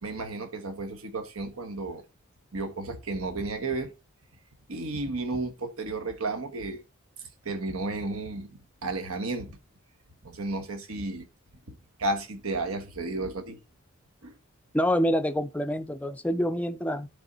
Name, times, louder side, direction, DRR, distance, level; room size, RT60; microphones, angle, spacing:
voice 1, 0.0-2.0 2.5-3.9 4.7-6.8 7.2-9.6 10.2-11.3 11.7-13.6 14.2-14.4, right 2 dB, 90° right, 1.2 m, -33 dB
voice 2, 14.7-17.1, equal, 5° left, 0.4 m, -26 dB
10.5 x 3.6 x 4.0 m
head